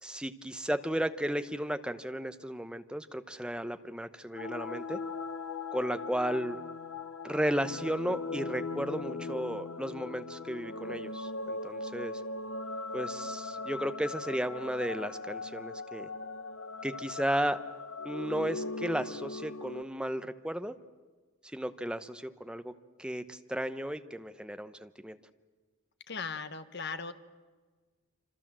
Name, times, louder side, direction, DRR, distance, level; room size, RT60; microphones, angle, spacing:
voice 1, 0.0-5.0 5.7-6.6 7.2-12.2 12.9-16.1 16.8-17.6 18.0-20.7 21.5-22.7 23.0-25.2, equal, 5° right, 10 dB, 0.8 m, -34 dB
sound 1, 4.3-19.8, left 3 dB, 85° left, 1.0 m, -39 dB
voice 2, 26.1-27.1, left 5 dB, 55° left, 10 dB, 1.3 m, -38 dB
27.0 x 26.5 x 7.5 m, 1.4 s
head